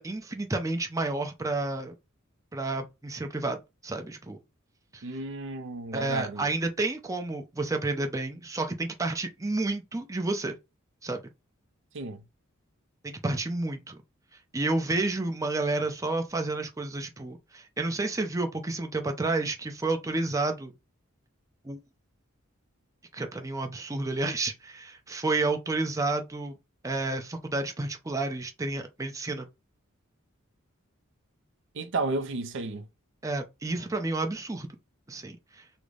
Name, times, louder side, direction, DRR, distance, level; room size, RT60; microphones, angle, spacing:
voice 1, 0.0-1.9 2.5-4.4 4.9-5.0 5.9-10.6 11.0-11.2 13.0-14.0 14.5-20.7 21.6-21.8 23.1-26.6 26.8-29.5 33.2-34.7 35.1-35.6, right 2 dB, 15° right, 0.5 m, -30 dB
voice 2, 5.0-6.5 11.9-12.2 31.7-32.9, right 3 dB, 60° right, 0.5 m, -32 dB
3.8 x 2.0 x 3.2 m
head